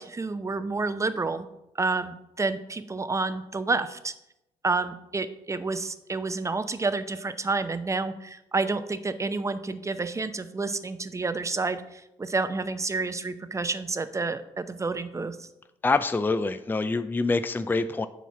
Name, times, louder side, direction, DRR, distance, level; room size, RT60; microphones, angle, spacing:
voice 1, 0.0-1.5 1.8-4.1 4.6-15.5, right 3 dB, 20° right, 11 dB, 0.7 m, -29 dB
voice 2, 15.8-18.1, left 3 dB, 15° left, 11 dB, 0.5 m, -25 dB
7.4 x 4.0 x 5.9 m, 0.86 s
hypercardioid pair, 55°, 13 cm